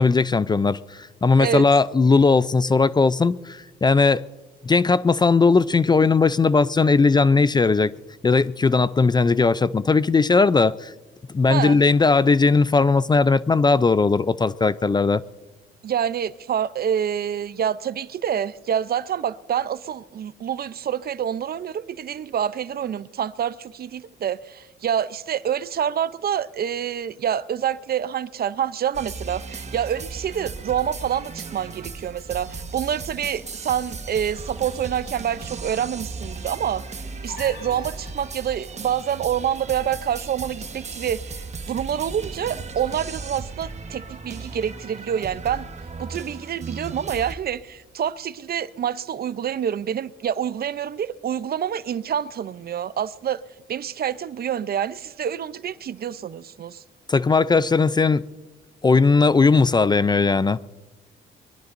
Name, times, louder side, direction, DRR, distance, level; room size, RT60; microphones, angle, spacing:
voice 1, 0.0-4.2 4.6-7.9 8.2-10.9 11.3-15.2 57.1-58.2 58.8-60.6, left 4 dB, 20° left, 0.4 m, -18 dB
voice 2, 15.8-36.8 37.2-45.7 46.0-53.4 53.7-56.8, right 9 dB, 50° right, 0.6 m, -27 dB
sound 1, 28.9-47.3, right 4 dB, 35° right, 1.3 m, -36 dB
sound 2, 37.3-38.9, left 2 dB, 60° left, 6.2 m, -43 dB
23.5 x 21.5 x 2.6 m
cardioid pair, 90°, 20 cm